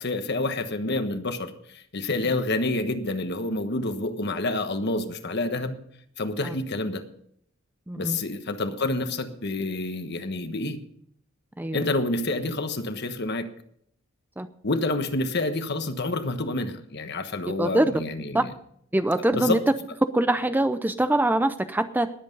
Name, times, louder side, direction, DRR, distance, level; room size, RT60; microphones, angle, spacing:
voice 1, 0.0-5.8 6.2-7.0 7.9-10.8 11.7-13.5 14.6-18.5 19.3-19.6, left 2 dB, 50° left, 8 dB, 1.3 m, -28 dB
voice 2, 7.9-8.2 11.6-11.8 14.4-14.5 17.6-17.9 18.3-18.4 18.9-19.6 20.1-22.1, right 1 dB, 10° right, 11 dB, 0.5 m, -23 dB
20.5 x 8.0 x 5.3 m, 0.67 s
head